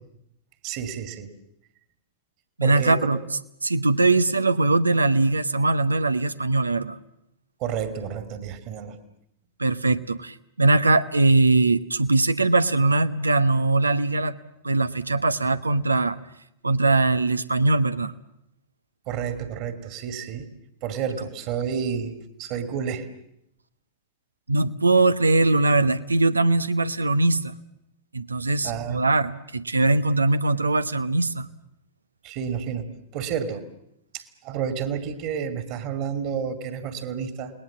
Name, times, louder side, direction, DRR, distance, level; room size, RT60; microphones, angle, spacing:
voice 1, 0.6-1.3 2.6-3.1 7.6-9.0 19.1-20.5 20.8-23.1 28.6-29.1 32.2-33.6 34.1-37.5, right 7 dB, 45° right, 8 dB, 2.6 m, -30 dB
voice 2, 2.6-3.2 3.6-7.0 9.6-14.4 14.6-16.2 16.6-18.1 24.5-27.5 28.1-31.5, right 2 dB, 80° right, 13 dB, 1.0 m, -21 dB
29.5 x 20.0 x 7.5 m, 0.78 s
figure-of-eight pair, 90°, 0 cm